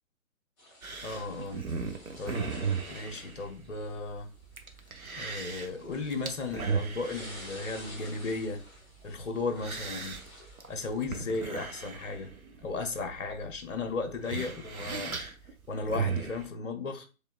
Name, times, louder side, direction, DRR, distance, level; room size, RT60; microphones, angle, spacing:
sound 1, 0.6-11.9, left 1 dB, 10° left, 0.9 m, -52 dB
sound 2, 0.8-16.5, right 5 dB, 90° right, 0.8 m, -38 dB
voice 1, 1.0-1.6 2.2-2.6 2.9-4.3 5.2-8.6 9.0-10.2 10.7-12.3 12.6-15.2 15.7-17.1, left 3 dB, 60° left, 0.9 m, -35 dB
4.3 x 3.3 x 2.2 m
figure-of-eight pair, 140°, 42 cm